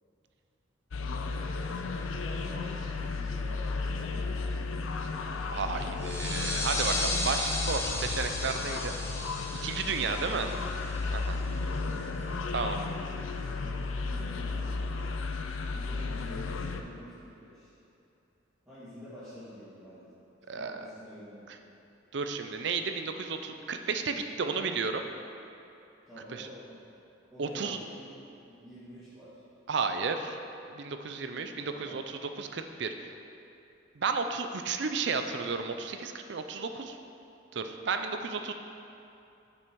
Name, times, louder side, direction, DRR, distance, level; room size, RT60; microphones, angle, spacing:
sound 1, 0.9-16.8, left 3 dB, 75° left, 0.5 m, -34 dB
voice 1, 1.7-5.0 9.8-10.5 11.4-12.0 12.7-15.0 15.7-17.7 18.6-20.1 20.5-21.6 26.1-26.8 27.3-28.1 28.5-29.4 31.4-32.0, equal, 15° right, -16 dB, 2.0 m, -48 dB
voice 2, 5.5-8.9 9.6-10.5 11.1-11.4 12.5-12.8 20.5-20.9 22.1-25.0 26.3-26.5 27.4-27.8 29.7-30.4 30.7-32.0 32.4-33.1 34.0-37.0 37.5-38.5, right 4 dB, 55° right, 7 dB, 0.5 m, -33 dB
sound 2, 6.0-11.3, left 2 dB, 10° left, 0.6 m, -35 dB
7.8 x 6.2 x 4.6 m, 2.7 s
head